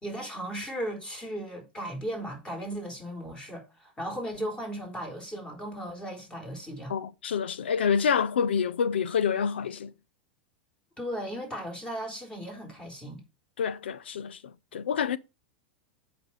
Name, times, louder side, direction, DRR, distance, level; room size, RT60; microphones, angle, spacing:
voice 1, 0.0-6.9 11.0-13.2, equal, 15° left, 4.2 m, -36 dB
voice 2, 6.9-9.9 13.6-15.2, left 7 dB, 90° left, 0.7 m, -27 dB
8.0 x 6.0 x 4.9 m
hypercardioid pair, 110°, 6 cm